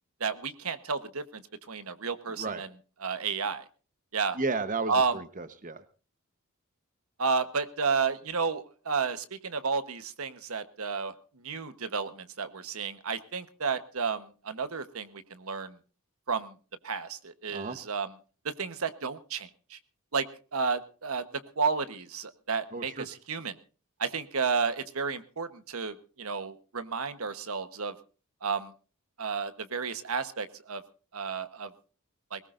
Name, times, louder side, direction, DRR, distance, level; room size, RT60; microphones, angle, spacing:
voice 1, 0.2-2.7 3.0-3.6 4.1-4.4 4.9-5.2 7.2-11.1 11.4-15.8 16.3-16.5 16.8-18.1 18.4-19.8 20.1-23.6 24.0-27.9 28.4-28.7 29.2-30.8 31.1-31.7 32.3-32.4, right 5 dB, 85° right, 11 dB, 1.2 m, -32 dB
voice 2, 4.3-5.8 17.5-17.8 22.7-23.1, right 3 dB, 40° right, 10 dB, 1.1 m, -33 dB
21.5 x 19.0 x 2.6 m, 0.36 s
head